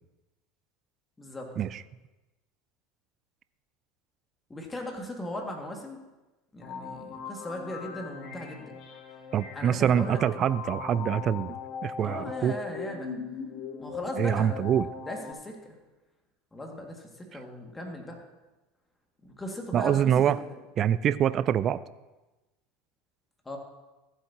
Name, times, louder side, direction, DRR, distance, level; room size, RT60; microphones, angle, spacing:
voice 1, 1.2-1.5 4.5-6.0 6.5-9.1 9.5-10.2 12.0-13.2 13.8-14.7 15.1-15.8 16.5-18.2 19.2-20.6 23.5-23.6, left 1 dB, 15° left, 1 dB, 2.1 m, -38 dB
sound 1, 6.6-15.3, left 6 dB, 55° left, 1.1 m, -39 dB
voice 2, 9.3-11.6 11.8-12.6 14.2-14.9 19.7-20.4 20.8-21.8, right 9 dB, 45° right, 17 dB, 0.3 m, -25 dB
14.5 x 8.0 x 2.9 m, 1.1 s
hypercardioid pair, 80°, 0 cm